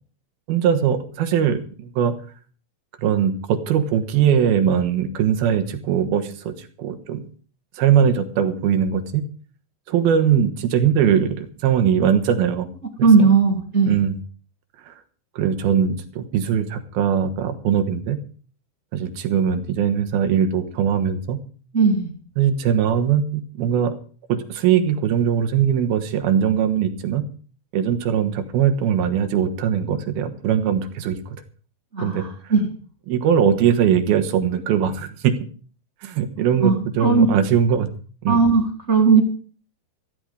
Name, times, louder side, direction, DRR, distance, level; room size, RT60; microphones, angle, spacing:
voice 1, 0.5-2.1 3.0-7.2 7.8-9.2 9.9-12.7 13.9-14.1 14.9-15.0 15.4-18.2 18.9-21.4 22.4-23.9 24.3-27.2 27.7-31.2 32.0-32.2 33.1-35.3 36.0-37.9 38.2-38.4, right 8 dB, 80° right, 9 dB, 3.2 m, -20 dB
voice 2, 13.0-14.0 21.7-22.1 31.9-32.7 36.4-37.3 38.3-39.2, right 4 dB, 25° right, 3 dB, 1.8 m, -17 dB
14.5 x 14.5 x 4.9 m, 0.41 s
omnidirectional pair, 4.4 m